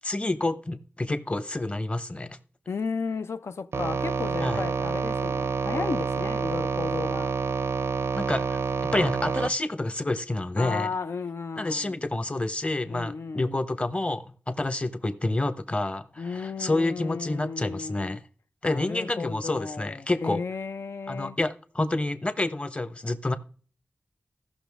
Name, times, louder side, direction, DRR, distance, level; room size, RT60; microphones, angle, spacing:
voice 1, 0.0-2.4 4.4-4.6 8.1-8.6 8.9-10.9 11.6-18.2 18.6-20.4 21.1-23.4, left 2 dB, 30° left, 1.0 m, -28 dB
voice 2, 2.7-7.3 10.6-12.0 12.9-13.6 16.2-18.2 18.6-21.4, left 5 dB, 90° left, 0.6 m, -34 dB
sound 1, 3.7-9.5, right 5 dB, 80° right, 0.5 m, -28 dB
15.5 x 6.1 x 3.6 m
wide cardioid pair, 85°, 4 cm